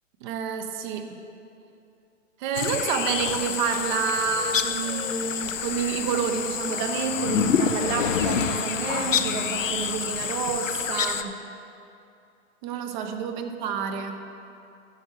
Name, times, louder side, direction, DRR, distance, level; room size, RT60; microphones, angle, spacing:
voice 1, 0.2-1.2 2.4-11.4 12.6-14.2, right 7 dB, 40° right, 6 dB, 0.9 m, -29 dB
sound 1, 2.5-11.2, left 6 dB, 90° left, 0.6 m, -28 dB
sound 2, 2.5-10.2, left 7 dB, 60° left, 0.9 m, -37 dB
10.5 x 6.3 x 6.3 m, 2.7 s
hypercardioid pair, 120°, 37 cm